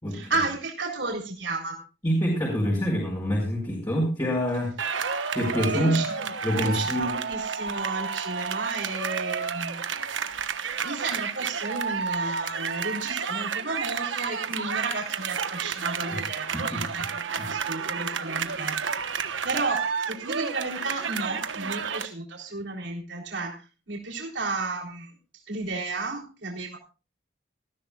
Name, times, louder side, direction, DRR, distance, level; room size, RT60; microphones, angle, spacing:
voice 1, 0.1-1.8 5.7-6.3 6.6-10.2 10.8-19.1 19.4-25.1 25.5-26.8, right 3 dB, 70° right, 0 dB, 3.7 m, -33 dB
voice 2, 2.0-4.7 5.3-6.0 6.4-7.1 16.5-16.8, equal, 20° left, -3 dB, 5.1 m, -26 dB
sound 1, 4.8-22.1, right 6 dB, 85° right, 1.2 m, -31 dB
19.5 x 14.5 x 2.4 m, 0.33 s
head